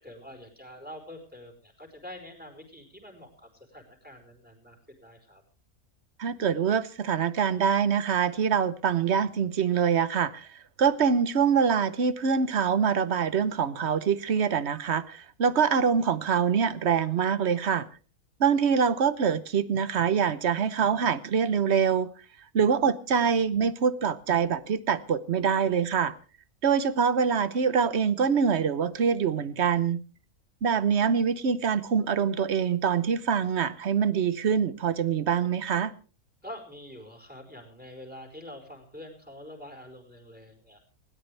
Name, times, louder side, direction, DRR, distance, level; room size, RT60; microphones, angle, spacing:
voice 1, 0.0-5.4 36.4-40.8, left 1 dB, 5° right, 4.5 m, -46 dB
voice 2, 6.2-17.9 18.4-22.1 22.5-26.1 26.6-30.0 30.6-35.9, right 7 dB, 50° right, 1.1 m, -25 dB
19.5 x 17.5 x 3.3 m
omnidirectional pair, 1.6 m